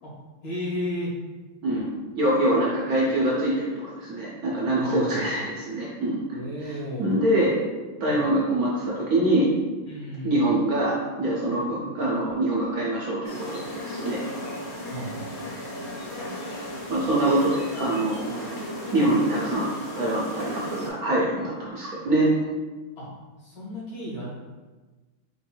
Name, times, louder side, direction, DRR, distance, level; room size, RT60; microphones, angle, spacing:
voice 1, 0.4-1.1 4.8-5.2 6.3-7.1 8.1-8.3 9.9-10.5 11.5-11.9 14.9-15.3 23.0-23.1 23.4-24.3, equal, 75° left, -7 dB, 2.4 m, -34 dB
voice 2, 1.6-6.2 7.0-7.5 8.0-9.5 10.2-14.2 16.9-18.7 18.9-19.7 20.0-22.3, right 1 dB, 60° right, -5 dB, 1.1 m, -24 dB
sound 1, 13.2-20.9, left 1 dB, 40° left, 1.0 m, -35 dB
4.5 x 2.6 x 4.4 m, 1.3 s
omnidirectional pair, 2.2 m